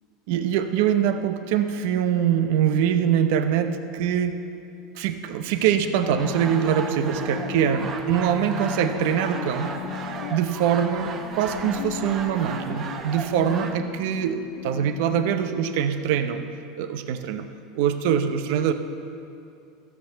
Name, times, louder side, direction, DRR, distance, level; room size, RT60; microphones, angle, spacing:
voice 1, 0.3-4.4 5.0-9.7 10.0-16.5 16.8-17.5 17.7-18.7, right 9 dB, 70° right, 9 dB, 0.8 m, -23 dB
sound 1, 5.5-15.5, left 11 dB, 90° left, 0.8 m, -37 dB
sound 2, 6.2-13.8, right 5 dB, 35° right, 1.0 m, -36 dB
14.5 x 6.8 x 6.8 m, 2.5 s
supercardioid pair, 125°, 0 cm